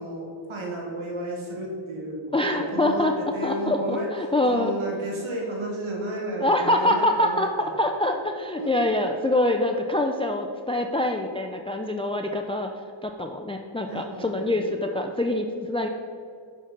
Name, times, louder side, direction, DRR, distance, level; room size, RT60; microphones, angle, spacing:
voice 1, 0.0-4.1 4.5-7.7 8.6-8.7 13.8-14.5, right 1 dB, 85° right, -1 dB, 1.3 m, -32 dB
voice 2, 2.3-4.7 6.4-12.7 13.0-15.9, left 1 dB, 15° left, 4 dB, 0.4 m, -25 dB
5.9 x 4.7 x 5.3 m, 2.3 s
cardioid pair, 40°, 47 cm